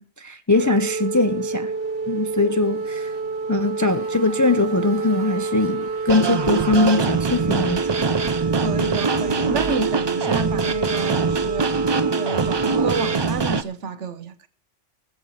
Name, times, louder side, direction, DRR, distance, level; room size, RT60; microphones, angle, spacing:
voice 1, 0.0-1.7 2.1-3.1 3.5-7.8, left 2 dB, 30° left, 0.3 m, -21 dB
sound 1, 0.5-13.2, right 4 dB, 55° right, 1.0 m, -28 dB
Motorcycle, 2.0-8.0, left 2 dB, 50° left, 1.7 m, -48 dB
sound 2, 6.1-13.6, right 4 dB, 35° right, 0.4 m, -23 dB
voice 2, 8.5-11.7 12.1-14.5, right 4 dB, 90° right, 1.3 m, -29 dB
19.0 x 7.0 x 4.6 m
omnidirectional pair, 1.2 m